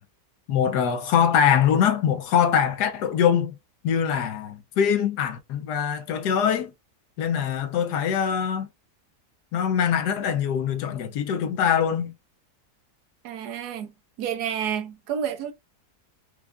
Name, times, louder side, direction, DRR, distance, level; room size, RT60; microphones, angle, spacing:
voice 1, 0.5-3.6 3.8-6.7 7.2-8.7 9.5-12.1, left 8 dB, 75° left, 1.2 m, -23 dB
voice 2, 13.2-13.9 14.2-15.5, right 8 dB, 75° right, 1.1 m, -29 dB
4.6 x 2.4 x 2.2 m
omnidirectional pair, 1.8 m